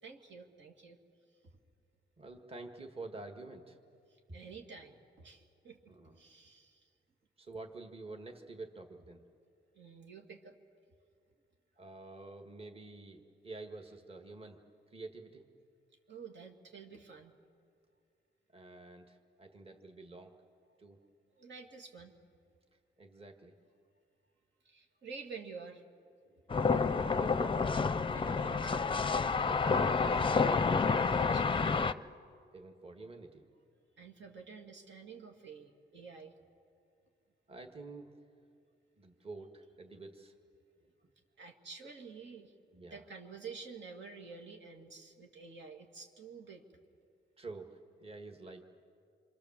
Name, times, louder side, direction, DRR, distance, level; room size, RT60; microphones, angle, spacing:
voice 1, 0.0-1.0 1.4-1.5 4.1-6.9 9.7-10.6 16.1-17.3 21.4-22.1 24.6-25.8 28.1-29.2 30.7-31.6 34.0-36.3 41.4-42.5 42.9-46.6, right 5 dB, 75° right, 2 dB, 2.3 m, -50 dB
voice 2, 2.2-3.8 4.3-4.4 5.9-6.2 7.4-9.2 11.8-15.5 18.5-20.3 20.8-21.0 23.0-23.5 26.2-27.6 29.4-30.3 31.9-32.1 32.5-33.5 37.5-38.1 39.0-40.3 42.7-43.0 47.4-48.6, right 3 dB, 30° right, 4 dB, 1.8 m, -48 dB
sound 1, 26.5-31.9, left 4 dB, 25° left, 0.6 m, -29 dB
28.0 x 24.0 x 7.4 m, 2.4 s
cardioid pair, 100°, 19 cm